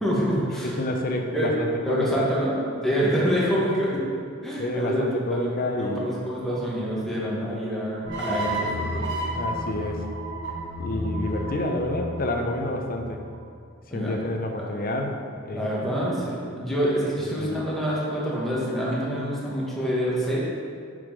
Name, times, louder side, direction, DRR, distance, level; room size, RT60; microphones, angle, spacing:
voice 1, 0.0-0.8 1.3-1.5 1.8-2.5 2.8-4.0 4.4-5.1 5.3-9.0 13.9-14.3 14.6-14.7 15.5-20.4, equal, ahead, -7 dB, 1.7 m, -26 dB
voice 2, 0.8-2.3 4.6-6.0 9.4-10.0 10.8-13.2 13.9-15.7 17.2-17.6, left 1 dB, 45° left, 3 dB, 0.7 m, -29 dB
sound 1, 8.1-13.3, right 1 dB, 60° right, 1.3 m, -31 dB
6.8 x 5.1 x 5.2 m, 2.3 s
head